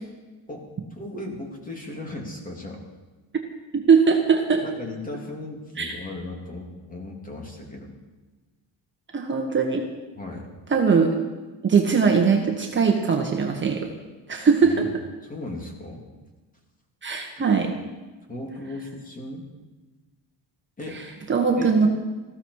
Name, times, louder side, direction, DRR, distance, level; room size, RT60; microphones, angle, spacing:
voice 1, 0.5-2.8 4.6-8.0 10.1-10.5 14.6-14.9 15.2-16.0 18.3-19.5 20.8-21.0 21.6-21.7, left 2 dB, 20° left, 1 dB, 3.0 m, -36 dB
voice 2, 3.7-4.6 5.8-5.9 9.1-9.9 10.7-11.2 11.6-13.9 14.3-14.8 17.0-17.7 21.3-21.9, right 5 dB, 25° right, 1 dB, 1.5 m, -20 dB
19.5 x 15.0 x 4.9 m, 1.2 s
cardioid pair, 155°, 43 cm